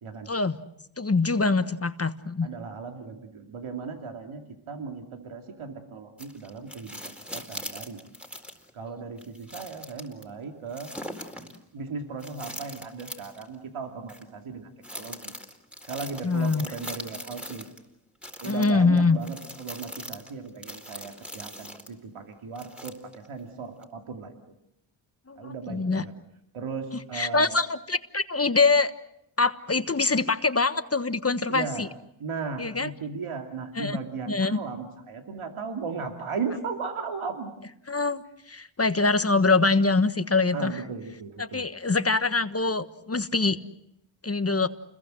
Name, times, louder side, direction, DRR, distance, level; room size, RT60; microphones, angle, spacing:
voice 1, 0.3-0.6 1.0-2.5 16.2-16.7 18.4-19.2 25.3-26.0 27.1-28.9 29.4-31.9 32.6-32.9 33.7-34.0 34.3-34.6 37.9-40.8 41.4-43.6 44.2-44.7, left 3 dB, 30° left, 11 dB, 1.3 m, -24 dB
voice 2, 2.4-4.4 4.7-8.0 8.7-10.9 11.7-15.3 15.9-17.7 18.4-24.3 25.4-26.1 26.5-27.6 31.5-31.9 32.2-37.5 40.5-41.7, right 5 dB, 80° right, 4 dB, 2.8 m, -36 dB
sound 1, 6.2-8.7 9.2-10.2 10.7-11.6 12.2-13.5 14.1-14.2 14.8-17.8 18.2-21.9 22.6-23.3 23.8-23.9, equal, ahead, 4.2 m, -41 dB
29.5 x 21.5 x 7.8 m, 0.77 s
cardioid pair, 60°, 49 cm